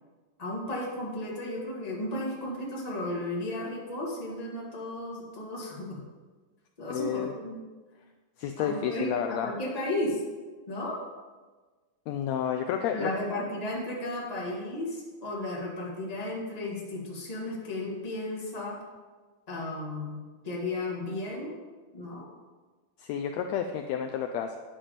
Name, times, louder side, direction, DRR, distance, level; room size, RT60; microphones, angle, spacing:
voice 1, 0.4-6.0 6.8-7.6 8.6-10.2 10.7-11.0 12.9-18.8 19.5-21.6 21.9-22.3, left 1 dB, 15° left, -4 dB, 1.7 m, -34 dB
voice 2, 6.9-7.3 8.4-9.5 12.1-13.1 23.0-24.6, left 9 dB, 85° left, 4 dB, 1.5 m, -30 dB
10.0 x 7.2 x 5.1 m, 1.3 s
omnidirectional pair, 3.7 m